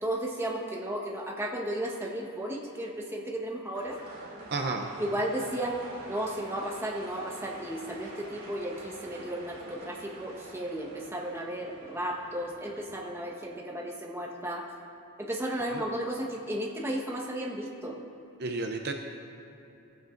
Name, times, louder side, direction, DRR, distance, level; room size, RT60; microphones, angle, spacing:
voice 1, 0.0-4.0 5.0-5.8 6.1-14.7 15.2-18.0, right 1 dB, 10° right, -2 dB, 1.3 m, -34 dB
sound 1, 3.8-13.2, right 1 dB, 70° right, 2.6 m, -46 dB
voice 2, 4.5-4.9 15.7-15.9 18.4-18.9, right 3 dB, 50° right, 4 dB, 0.6 m, -31 dB
17.0 x 15.0 x 2.6 m, 2.9 s
head